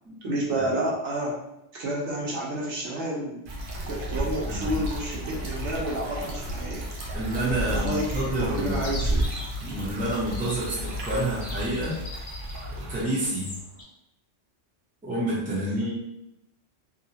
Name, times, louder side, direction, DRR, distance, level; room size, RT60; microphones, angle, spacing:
voice 1, 0.2-1.4 1.7-3.4 3.9-6.9 7.7-9.3, right 1 dB, 90° right, -3 dB, 1.1 m, -30 dB
sound 1, 3.5-13.0, equal, 55° right, 0.7 m, -36 dB
Fixed-wing aircraft airplane, 3.7-9.2, right 1 dB, 40° left, 0.3 m, -33 dB
voice 2, 4.1-4.8 7.1-8.8 9.6-12.0 12.9-13.5 15.0-15.9, right 1 dB, 10° right, -7 dB, 0.7 m, -29 dB
Chirp tweet, 8.7-13.8, left 1 dB, 55° left, 0.9 m, -42 dB
2.8 x 2.3 x 2.7 m, 0.85 s
omnidirectional pair, 1.2 m